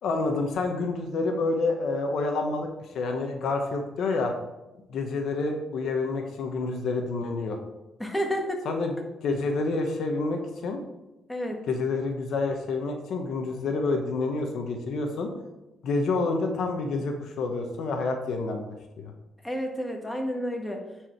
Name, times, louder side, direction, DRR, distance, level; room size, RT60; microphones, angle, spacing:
voice 1, 0.0-2.7 2.9-4.3 4.9-7.6 8.6-8.9 9.2-10.8 11.7-15.3 15.8-19.1, left 3 dB, 70° left, 4 dB, 1.2 m, -28 dB
voice 2, 8.0-8.7 11.3-11.6 19.4-20.8, equal, 10° left, 1 dB, 1.6 m, -30 dB
10.0 x 4.8 x 4.5 m, 0.99 s
cardioid pair, 90°, 0 cm